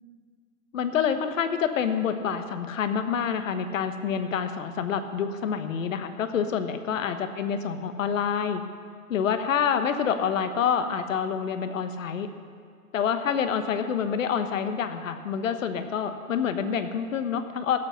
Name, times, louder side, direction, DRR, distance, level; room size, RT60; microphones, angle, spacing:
voice 1, 0.7-8.6 9.1-12.3 12.9-17.8, left 7 dB, 65° left, 9 dB, 1.2 m, -27 dB
16.0 x 7.7 x 5.8 m, 2.2 s
hypercardioid pair, 150°, 43 cm